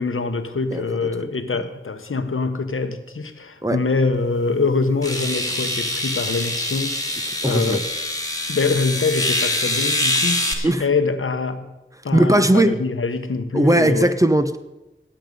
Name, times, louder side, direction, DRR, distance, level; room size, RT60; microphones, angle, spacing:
voice 1, 0.0-7.9 8.5-11.7 12.0-14.1, left 4 dB, 85° left, 9 dB, 1.0 m, -24 dB
sound 1, 4.1-4.2 5.0-10.5, left 1 dB, 15° left, 2.0 m, -24 dB
voice 2, 7.4-7.8 10.6-10.8 12.1-12.7 13.5-14.6, right 1 dB, 15° right, 10 dB, 0.8 m, -17 dB
17.5 x 7.7 x 5.3 m, 1.0 s
wide cardioid pair, 50°, 21 cm